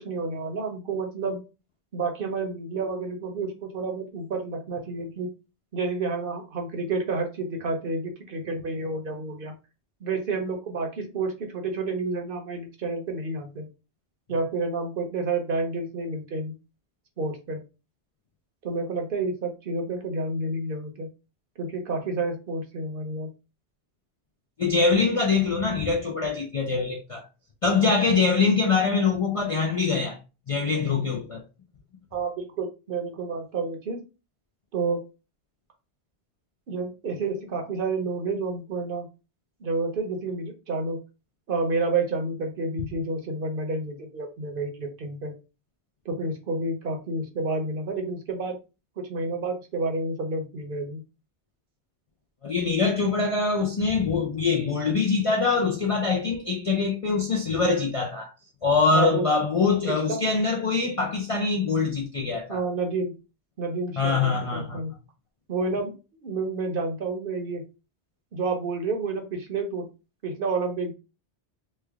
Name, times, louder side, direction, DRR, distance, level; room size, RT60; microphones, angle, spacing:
voice 1, 0.0-1.4 1.9-5.3 5.7-9.5 10.0-13.7 14.3-16.5 17.2-17.6 18.6-21.1 21.6-23.3 32.1-34.0 34.7-35.0 36.7-39.1 39.6-41.0 41.5-45.3 46.0-48.6 49.0-51.0 58.9-59.3 59.9-60.2 62.5-63.1 63.6-64.9 65.5-65.9 66.2-67.6 68.3-69.9 70.2-70.9, right 3 dB, 55° right, 0.9 m, -29 dB
voice 2, 24.6-27.2 27.6-30.2 30.5-31.4 52.4-58.3 58.6-62.6 64.0-64.8, left 4 dB, 45° left, 0.4 m, -24 dB
3.2 x 2.2 x 3.4 m
omnidirectional pair, 1.1 m